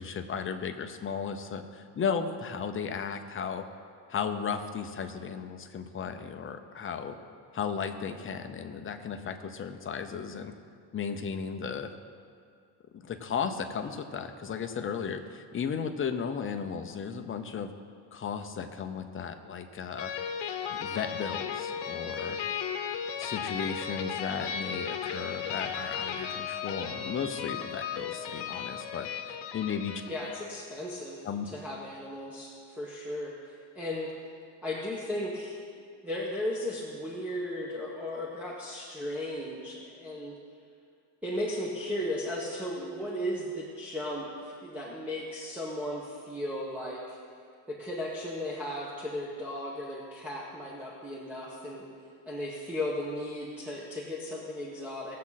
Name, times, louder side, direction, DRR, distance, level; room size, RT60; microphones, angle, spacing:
voice 1, 0.0-3.6 4.1-7.1 7.5-10.5 10.9-11.9 12.9-17.7 18.1-20.1 20.7-22.4 23.2-30.0 31.2-31.4, left 6 dB, 25° left, 6 dB, 0.7 m, -35 dB
sound 1, 20.0-30.7, left 7 dB, 60° left, 1.1 m, -35 dB
voice 2, 30.1-34.1 34.6-35.6 36.0-40.4 41.2-47.2 47.7-51.9 52.3-55.2, left 1 dB, 5° right, -5 dB, 1.3 m, -36 dB
19.0 x 7.5 x 4.1 m, 2.2 s
cardioid pair, 150°, 46 cm